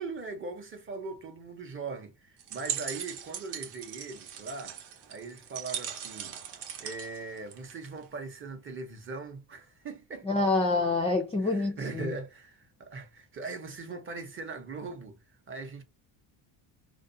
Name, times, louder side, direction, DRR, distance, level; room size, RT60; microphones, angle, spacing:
voice 1, 0.0-4.8 5.1-6.4 6.8-10.3 11.4-15.2 15.5-15.8, right 3 dB, 25° right, 0.6 m, -40 dB
sound 1, 2.4-8.0, right 9 dB, 55° right, 0.8 m, -39 dB
voice 2, 10.2-12.1, left 3 dB, 15° left, 0.4 m, -27 dB
2.4 x 2.1 x 2.6 m
cardioid pair, 125°, 49 cm